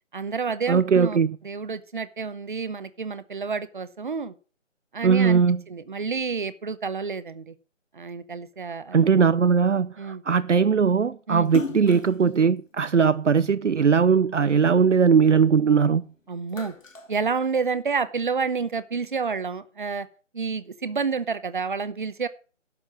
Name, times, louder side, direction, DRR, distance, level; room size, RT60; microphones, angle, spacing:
voice 1, 0.1-1.2 1.4-4.3 4.9-5.4 5.7-7.5 7.9-9.0 10.0-10.2 11.3-11.5 16.3-16.7 17.1-20.1 20.3-22.3, right 5 dB, 40° right, 0.9 m, -29 dB
voice 2, 0.7-1.4 5.0-5.6 8.9-16.0, right 6 dB, 70° right, 0.7 m, -20 dB
Splash splatter, 11.4-14.0 14.5-15.9 16.3-18.0, left 4 dB, 80° left, 2.1 m, -38 dB
12.0 x 7.0 x 7.3 m
figure-of-eight pair, 155°, 38 cm